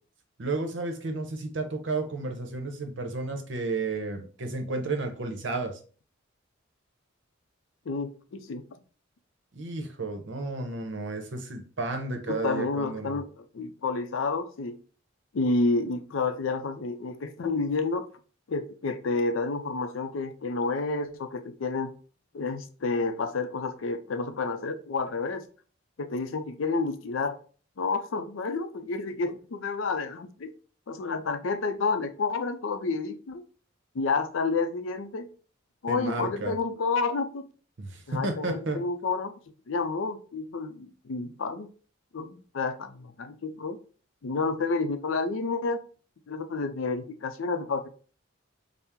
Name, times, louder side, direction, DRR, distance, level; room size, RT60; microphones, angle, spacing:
voice 1, 0.4-5.7 9.5-13.2 35.9-36.6 37.8-38.8, right 3 dB, 65° right, 5 dB, 0.8 m, -32 dB
voice 2, 7.9-8.6 12.3-14.8 15.3-18.1 18.5-21.9 22.3-25.4 26.0-27.4 27.8-30.5 30.9-33.4 33.9-35.3 35.8-37.5 38.1-39.3 39.7-41.7 42.1-43.8 44.2-45.8 46.3-47.9, left 3 dB, 80° left, 8 dB, 0.5 m, -30 dB
4.3 x 2.0 x 3.6 m, 0.40 s
head